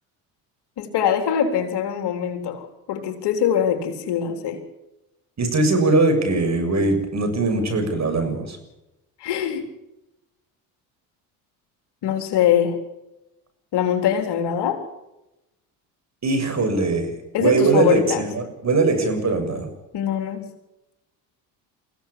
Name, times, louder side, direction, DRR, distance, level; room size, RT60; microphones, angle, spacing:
voice 1, 0.8-4.6 9.2-9.6 12.0-12.8 13.7-14.8 17.3-18.3 19.9-20.5, left 9 dB, 60° left, 6 dB, 3.8 m, -23 dB
voice 2, 5.4-8.6 16.2-17.1 17.4-19.7, right 3 dB, 35° right, 7 dB, 7.4 m, -21 dB
23.5 x 16.0 x 8.6 m, 0.94 s
hypercardioid pair, 65°, 45 cm